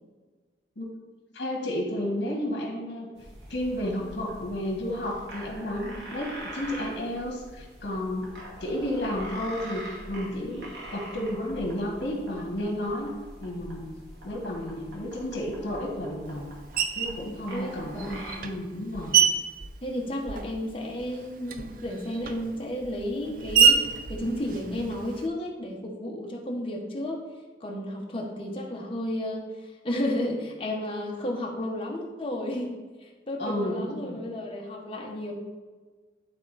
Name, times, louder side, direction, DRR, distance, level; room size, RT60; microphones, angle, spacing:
voice 1, 1.3-3.1 3.5-8.3 8.6-13.1 13.4-16.4 17.0-19.2 33.4-34.2, left 1 dB, 70° left, -1 dB, 1.8 m, -32 dB
sound 1, 3.2-18.4, right 1 dB, 80° right, 2.2 m, -43 dB
Screech, 16.8-17.2 18.0-20.7 21.0-25.3, right 6 dB, 50° right, 0.5 m, -26 dB
voice 2, 17.5-18.3 19.8-27.2 27.6-35.3, left 1 dB, 30° left, -1 dB, 1.2 m, -32 dB
11.0 x 3.7 x 4.2 m, 1.4 s
head